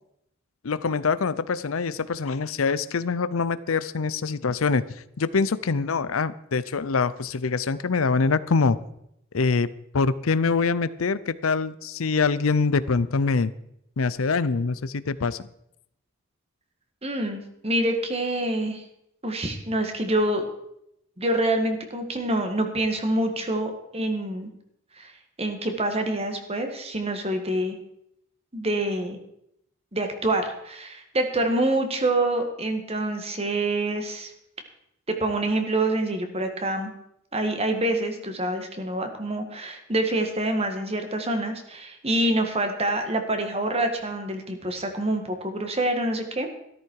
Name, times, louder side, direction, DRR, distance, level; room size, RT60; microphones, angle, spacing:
voice 1, 0.6-8.8 9.3-9.7 9.9-13.5 14.0-15.5, left 4 dB, 85° left, 16 dB, 0.6 m, -24 dB
voice 2, 17.0-18.8 19.2-20.4 21.2-24.5 25.0-25.1 25.4-27.8 28.5-29.2 29.9-34.3 35.1-36.9 37.3-46.6, right 1 dB, 30° right, 6 dB, 1.8 m, -26 dB
14.0 x 13.0 x 4.7 m, 0.77 s
head